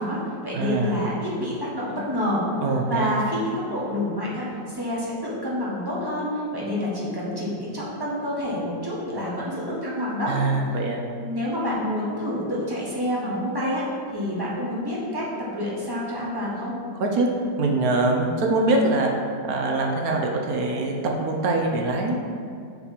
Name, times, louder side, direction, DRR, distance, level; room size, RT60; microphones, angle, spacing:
voice 1, 0.0-2.4 2.9-4.5 4.7-10.3 11.2-13.9 14.1-16.8, left 1 dB, 15° right, -6 dB, 1.1 m, -28 dB
voice 2, 0.5-0.9 2.6-3.2 10.3-11.0 17.0-17.3 17.6-19.1 19.5-20.9 21.2-22.2, right 2 dB, 65° right, 0 dB, 1.1 m, -23 dB
6.9 x 3.2 x 5.7 m, 2.4 s
omnidirectional pair, 1.9 m